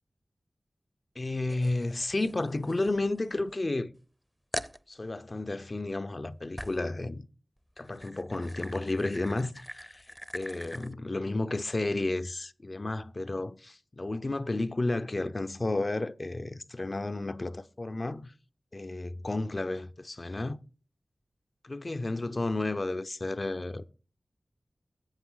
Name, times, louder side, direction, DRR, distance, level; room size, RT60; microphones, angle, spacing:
voice 1, 1.2-3.9 4.9-7.3 7.8-18.3 18.7-20.6 21.6-23.9, left 2 dB, 45° left, 0.6 m, -32 dB
sound 1, 1.5-3.6 4.0-4.1 4.5-4.8 6.6-6.9 7.7-10.9, equal, ahead, 0.6 m, -43 dB
8.8 x 7.7 x 3.9 m
wide cardioid pair, 50°, 0 cm